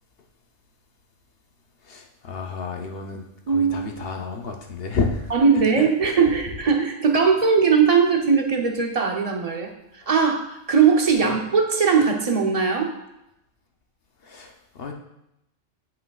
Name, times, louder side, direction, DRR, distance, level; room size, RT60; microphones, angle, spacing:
voice 1, 1.9-5.3 11.2-11.3 14.2-14.9, left 4 dB, 55° left, 3 dB, 0.9 m, -30 dB
voice 2, 3.5-3.8 5.3-12.9, right 5 dB, 35° right, 3 dB, 0.8 m, -20 dB
10.0 x 5.8 x 2.4 m, 0.85 s
omnidirectional pair, 1.3 m